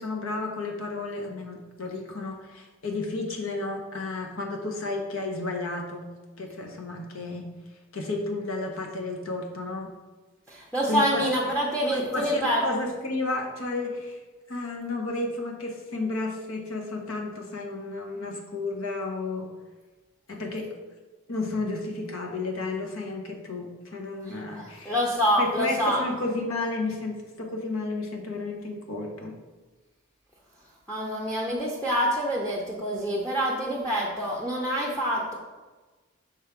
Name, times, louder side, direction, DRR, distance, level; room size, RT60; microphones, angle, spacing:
voice 1, 0.0-6.1 6.4-7.5 7.9-9.9 10.9-11.3 11.9-14.2 14.5-19.5 20.3-20.7 21.3-24.9 25.4-29.3, left 2 dB, 75° left, 1 dB, 1.0 m, -32 dB
voice 2, 10.5-12.6 24.3-26.0 30.9-35.3, equal, 5° left, -4 dB, 0.6 m, -26 dB
6.2 x 3.5 x 5.0 m, 1.3 s
head